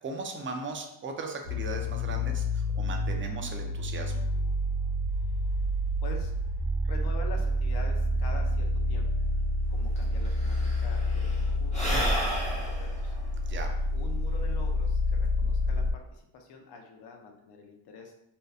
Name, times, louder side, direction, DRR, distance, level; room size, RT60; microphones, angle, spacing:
voice 1, 0.0-4.2 13.5-13.8, right 3 dB, 30° right, 3 dB, 0.3 m, -38 dB
sound 1, 1.4-15.9, left 1 dB, 80° right, 0.9 m, -29 dB
voice 2, 6.8-9.1 9.7-13.1 13.9-18.1, left 4 dB, 55° left, 2 dB, 0.5 m, -45 dB
Sigh / Breathing, 9.7-9.8 10.0-14.7, equal, 15° left, 0.7 m, -33 dB
2.7 x 2.1 x 2.3 m, 0.81 s
cardioid pair, 90°, 49 cm